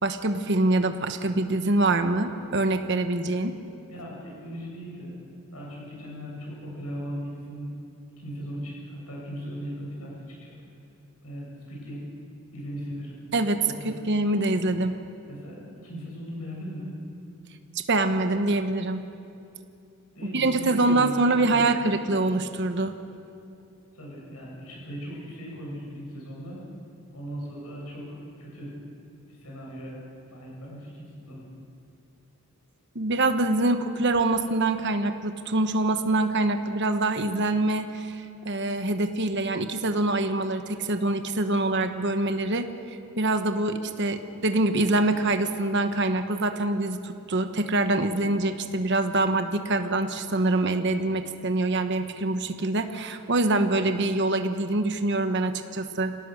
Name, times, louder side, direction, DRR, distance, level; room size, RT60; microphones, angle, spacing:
voice 1, 0.0-3.6 13.3-15.0 17.7-19.1 20.3-23.0 32.9-56.2, right 2 dB, 50° right, 7 dB, 1.1 m, -25 dB
voice 2, 3.9-5.1 5.5-7.7 8.2-10.5 11.2-12.0 12.5-13.1 13.6-13.9 15.3-15.6 15.8-16.9 20.1-21.6 23.9-26.6 27.1-28.7 29.3-30.0 30.3-31.4, equal, 85° left, -4 dB, 7.8 m, -38 dB
26.5 x 18.0 x 6.5 m, 2.6 s
head